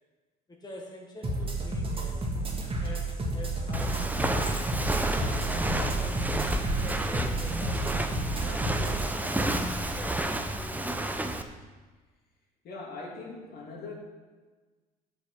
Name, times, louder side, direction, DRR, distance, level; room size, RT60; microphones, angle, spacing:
voice 1, 0.5-2.2 2.8-4.4 5.1-8.0 8.4-10.9, left 1 dB, 20° left, -1 dB, 1.6 m, -46 dB
sound 1, 1.2-9.0, right 2 dB, 30° right, 1.9 m, -31 dB
Walk footsteps, 3.7-11.4, right 1 dB, 10° right, 0.8 m, -30 dB
voice 2, 12.6-13.9, left 3 dB, 55° left, -1 dB, 2.2 m, -41 dB
7.8 x 6.2 x 5.9 m, 1.3 s
hypercardioid pair, 65°, 20 cm